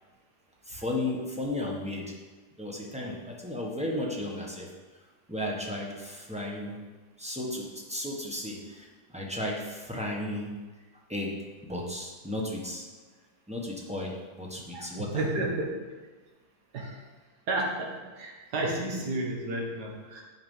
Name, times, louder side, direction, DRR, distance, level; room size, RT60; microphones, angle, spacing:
voice 1, 0.6-2.1 2.6-4.7 5.3-6.8 7.2-10.5 11.1-11.3 11.6-12.8 13.5-15.2, left 1 dB, 5° right, -3 dB, 1.0 m, -34 dB
voice 2, 15.1-15.7 16.7-17.0 17.5-17.9 18.2-20.2, right 2 dB, 70° right, -1 dB, 1.9 m, -31 dB
8.7 x 5.1 x 5.5 m, 1.3 s
omnidirectional pair, 1.8 m